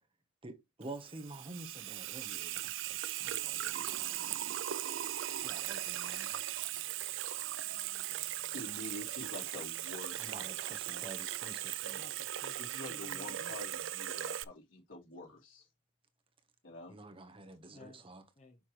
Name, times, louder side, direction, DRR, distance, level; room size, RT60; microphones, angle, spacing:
voice 1, 0.4-4.4 5.4-6.4 10.2-12.0 16.9-18.2, right 2 dB, 30° right, 1.2 m, -49 dB
Water tap faucet / Sink (filling or washing), 0.8-14.4, right 13 dB, 70° right, 0.5 m, -38 dB
voice 2, 7.7-8.5 11.8-12.6 12.9-13.6 17.7-18.0 18.4-18.6, left 2 dB, 35° left, 1.1 m, -56 dB
voice 3, 8.4-10.3 12.6-15.7 16.6-16.9, left 2 dB, 75° left, 4.2 m, -47 dB
7.2 x 5.9 x 3.2 m
head